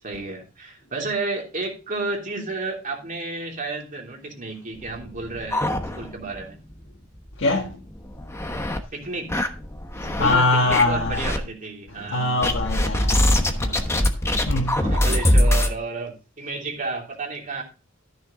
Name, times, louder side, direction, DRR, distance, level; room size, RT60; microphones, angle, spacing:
voice 1, 0.0-5.7 6.0-6.6 8.9-9.3 10.0-12.4 14.7-17.6, right 3 dB, 40° right, 3.0 m, -32 dB
sound 1, 4.8-6.4 6.7-6.8 7.2-7.3 7.9-8.8 9.3-10.4 10.7-11.4 12.4-15.7, left 1 dB, 15° left, 1.2 m, -22 dB
voice 2, 7.4-7.8 9.9-11.2 12.1-14.0 14.3-14.9, left 2 dB, 65° left, 1.6 m, -23 dB
14.0 x 6.6 x 3.7 m
head